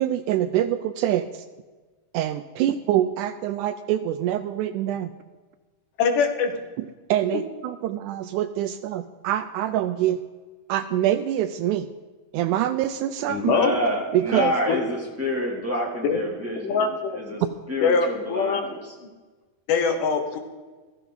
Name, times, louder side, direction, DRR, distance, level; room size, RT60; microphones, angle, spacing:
voice 1, 0.0-1.4 2.1-5.1 7.1-10.2 10.7-11.9 12.3-13.5 14.1-14.5, right 12 dB, 80° right, 11 dB, 1.9 m, -25 dB
voice 2, 6.0-6.6 13.3-13.7 14.7-14.8 16.0-16.2 16.6-17.2 17.8-18.6 19.0-19.1 19.7-20.4, left 5 dB, 75° left, 6 dB, 2.7 m, -23 dB
voice 3, 13.4-17.4 17.7-18.9, left 1 dB, 5° right, -2 dB, 2.1 m, -28 dB
15.0 x 14.5 x 3.9 m, 1.3 s
omnidirectional pair, 3.8 m